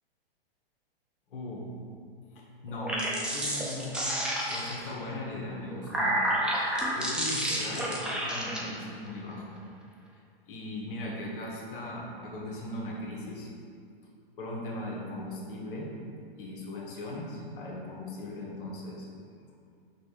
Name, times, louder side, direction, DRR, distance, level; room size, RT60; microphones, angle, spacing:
voice 1, 1.3-1.7 2.3-3.0 3.3-4.0 4.5-6.2 6.9-9.6 10.5-13.5 14.4-15.9 16.4-19.1, left 1 dB, 55° left, -2 dB, 1.3 m, -38 dB
sound 1, 2.7-4.9 5.6-8.6, right 1 dB, 5° right, 0.4 m, -30 dB
5.8 x 3.3 x 5.7 m, 2.3 s
hypercardioid pair, 135°, 30 cm